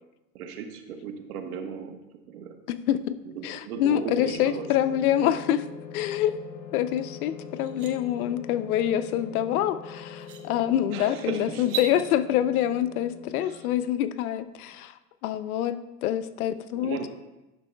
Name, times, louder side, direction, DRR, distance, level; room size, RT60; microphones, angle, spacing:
voice 1, 0.3-2.0 2.3-2.6 3.4-4.7 10.9-11.8 13.4-13.6 16.7-17.1, right 6 dB, 75° right, 6 dB, 1.1 m, -36 dB
voice 2, 2.7-3.1 3.4-5.7 5.9-6.3 6.7-15.0 15.2-17.1, left 11 dB, 75° left, 12 dB, 0.5 m, -26 dB
sound 1, 4.2-13.9, left 6 dB, 20° left, 0.5 m, -43 dB
sound 2, 7.0-7.1 7.5-7.9 9.6-9.7 10.2-10.4 11.6-11.9, right 8 dB, 35° right, 0.6 m, -35 dB
10.0 x 6.2 x 2.2 m, 1.0 s
supercardioid pair, 165°, 45 cm